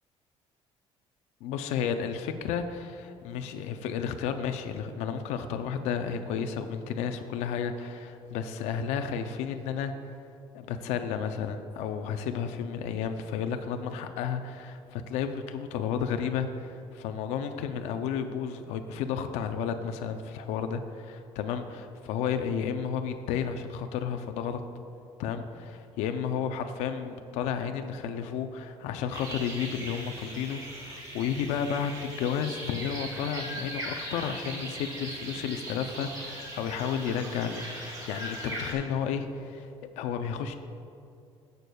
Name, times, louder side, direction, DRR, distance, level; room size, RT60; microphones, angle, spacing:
voice 1, 1.4-10.1 10.5-24.6 25.2-39.7 39.9-40.5, left 7 dB, 85° left, 7 dB, 0.5 m, -32 dB
sound 1, 29.1-38.7, right 1 dB, 30° right, 1.6 m, -39 dB
15.5 x 6.6 x 2.3 m, 2.6 s
cardioid pair, 180°, 11 cm